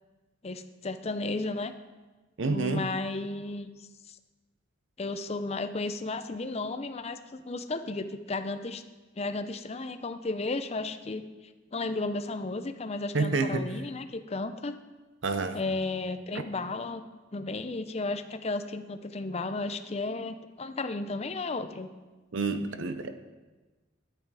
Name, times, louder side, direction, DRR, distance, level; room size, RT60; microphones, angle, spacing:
voice 1, 0.4-1.7 2.5-3.7 4.1-4.2 5.0-8.8 9.2-11.2 11.7-14.8 15.5-17.0 17.3-21.9, left 3 dB, 35° left, 9 dB, 0.6 m, -33 dB
voice 2, 2.4-2.9 13.1-13.7 15.2-15.6 22.3-23.1, right 3 dB, 75° right, 9 dB, 0.7 m, -28 dB
10.5 x 9.7 x 4.8 m, 1.2 s
head